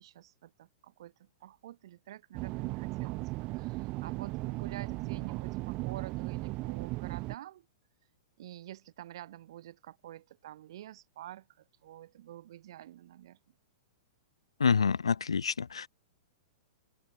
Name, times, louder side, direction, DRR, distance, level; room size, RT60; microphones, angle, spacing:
voice 1, 0.0-7.7 8.4-13.4, right 13 dB, 65° right, 5.6 m, -48 dB
sound 1, 2.3-7.4, right 22 dB, 40° right, 0.7 m, -36 dB
voice 2, 14.6-15.9, left 6 dB, 90° left, 1.6 m, -27 dB
open air
hypercardioid pair, 115°, 3 cm